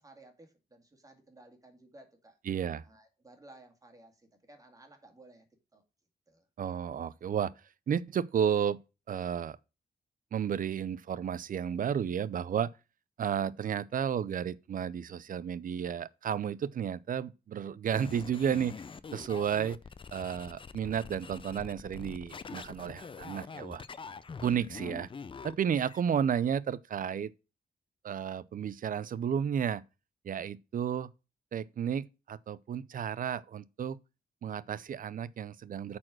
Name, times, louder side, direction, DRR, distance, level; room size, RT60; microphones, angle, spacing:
voice 1, 0.0-2.4 2.8-5.5 5.7-5.8 6.3-6.5, right 2 dB, 20° right, 2.2 m, -56 dB
voice 2, 2.5-2.8 6.6-7.5 7.9-8.8 9.1-9.6 10.3-12.7 13.2-18.7 19.1-19.8 20.1-23.8 24.4-25.1 25.4-27.3 28.0-29.8 30.2-31.1 31.5-34.0 34.4-36.0, right 8 dB, 60° right, 0.5 m, -32 dB
sound 1, 17.9-26.0, left 5 dB, 35° left, 0.4 m, -45 dB
8.9 x 4.3 x 6.2 m
wide cardioid pair, 110°, 16 cm